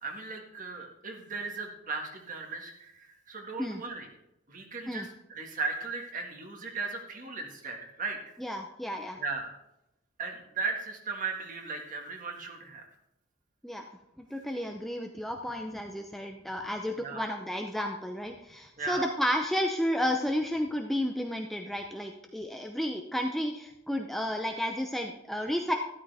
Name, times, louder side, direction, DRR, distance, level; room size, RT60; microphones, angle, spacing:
voice 1, 0.0-4.1 4.5-8.2 9.2-9.5 10.2-12.9 17.0-17.3 18.8-19.1, right 4 dB, 40° right, 2 dB, 1.7 m, -37 dB
voice 2, 8.4-9.2 13.6-13.8 14.3-25.7, equal, ahead, 3 dB, 0.6 m, -32 dB
12.5 x 12.5 x 3.5 m, 0.86 s
head